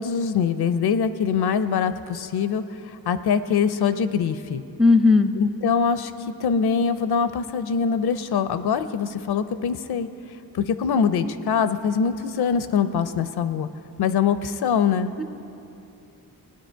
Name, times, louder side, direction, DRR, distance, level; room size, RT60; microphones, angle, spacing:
voice 1, 0.0-4.6 5.4-6.1 6.4-10.1 10.5-13.7 14.0-15.1, left 6 dB, 80° left, 12 dB, 0.6 m, -23 dB
voice 2, 4.8-5.3 15.2-15.3, left 3 dB, ahead, 9 dB, 0.4 m, -16 dB
18.0 x 9.5 x 4.5 m, 2.8 s
cardioid pair, 95°, 38 cm